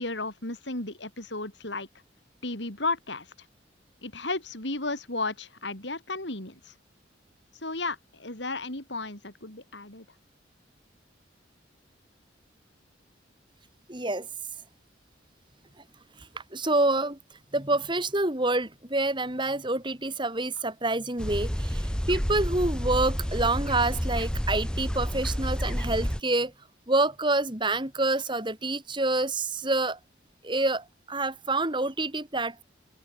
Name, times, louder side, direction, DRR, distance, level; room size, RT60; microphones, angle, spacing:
voice 1, 0.0-1.9 2.4-3.3 4.0-6.7 7.6-10.0, left 2 dB, 70° left, 6.4 m, -34 dB
voice 2, 13.9-14.3 16.3-17.2 17.5-26.5 26.9-30.0 30.4-32.6, right 2 dB, 25° right, 3.0 m, -27 dB
sound 1, 21.2-26.2, equal, 5° left, 1.9 m, -29 dB
open air
head